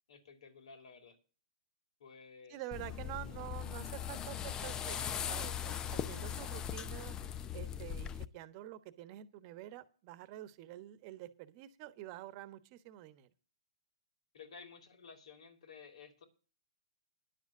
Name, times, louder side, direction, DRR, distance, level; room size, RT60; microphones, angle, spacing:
voice 1, 0.1-1.2 2.0-2.7 6.4-6.5 7.4-7.6 14.3-16.2, left 5 dB, 70° left, 7 dB, 3.1 m, -54 dB
voice 2, 2.5-7.2 7.5-13.3, right 14 dB, 40° right, 13 dB, 1.2 m, -48 dB
sound 1, 2.7-8.3, left 9 dB, 20° left, 0.6 m, -39 dB
11.0 x 7.4 x 7.3 m, 0.37 s
hypercardioid pair, 140°, 3 cm